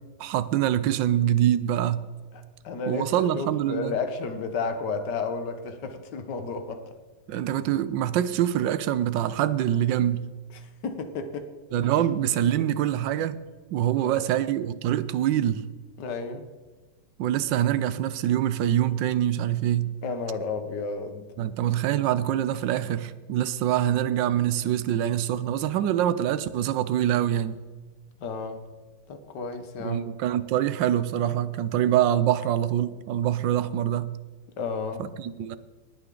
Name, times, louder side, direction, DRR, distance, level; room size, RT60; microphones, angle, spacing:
voice 1, 0.2-2.0 2.9-4.0 7.3-10.3 11.7-13.4 13.7-15.6 17.2-19.9 21.4-27.6 29.8-34.1 35.0-35.6, right 11 dB, 85° right, 1.4 m, -25 dB
voice 2, 2.3-6.9 10.5-11.5 14.0-14.2 16.0-16.5 20.0-21.3 28.2-28.7 29.1-30.0 34.6-35.1, left 4 dB, 70° left, 1.7 m, -32 dB
19.5 x 8.9 x 3.8 m
omnidirectional pair, 2.0 m